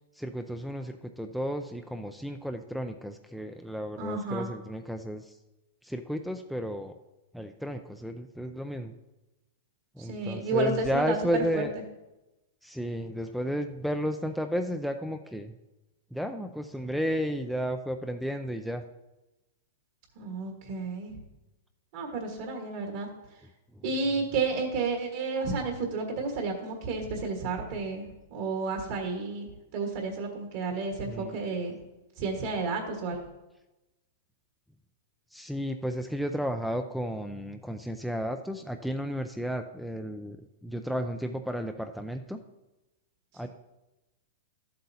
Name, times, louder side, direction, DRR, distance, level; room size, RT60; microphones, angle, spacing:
voice 1, 0.2-5.3 5.8-6.9 7.3-8.9 10.0-11.7 12.6-15.5 16.1-18.8 31.0-31.4 35.3-40.4 40.6-42.4 43.3-43.5, equal, ahead, 6 dB, 0.4 m, -33 dB
voice 2, 4.0-4.5 10.0-11.7 20.1-21.1 21.9-23.1 23.8-31.8 32.2-33.2, right 3 dB, 55° right, 2 dB, 1.6 m, -31 dB
12.5 x 7.7 x 2.8 m, 1.0 s
hypercardioid pair, 140°, 0 cm